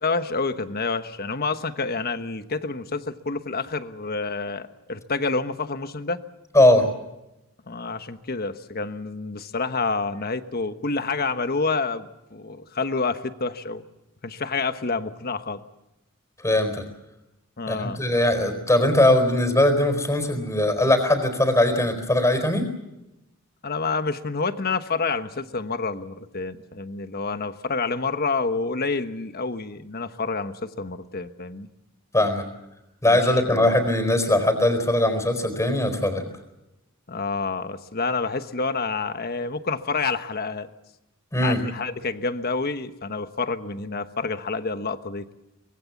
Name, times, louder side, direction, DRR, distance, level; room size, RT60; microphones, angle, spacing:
voice 1, 0.0-6.2 7.7-13.8 14.2-15.6 17.6-18.0 23.6-31.7 33.0-33.9 37.1-40.7 41.4-45.3, left 4 dB, 45° left, 10 dB, 1.2 m, -28 dB
voice 2, 16.4-16.8 17.7-22.7 32.1-32.4 33.0-36.2 41.3-41.6, left 1 dB, 15° left, 8 dB, 4.3 m, -20 dB
24.5 x 21.0 x 7.3 m, 0.93 s
head